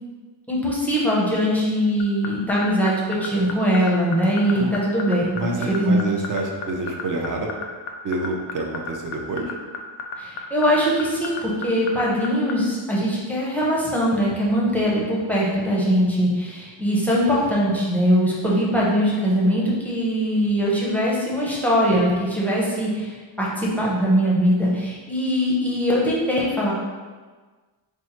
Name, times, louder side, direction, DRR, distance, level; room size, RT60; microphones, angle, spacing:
voice 1, 0.5-5.4 5.7-6.0 10.2-26.7, equal, 5° left, -6 dB, 0.6 m, -21 dB
sound 1, 2.0-12.5, left 6 dB, 70° left, 0.5 m, -31 dB
voice 2, 5.3-7.5 8.0-9.5, right 2 dB, 45° right, 1 dB, 0.5 m, -28 dB
4.5 x 2.1 x 2.9 m, 1.4 s
wide cardioid pair, 145°, 47 cm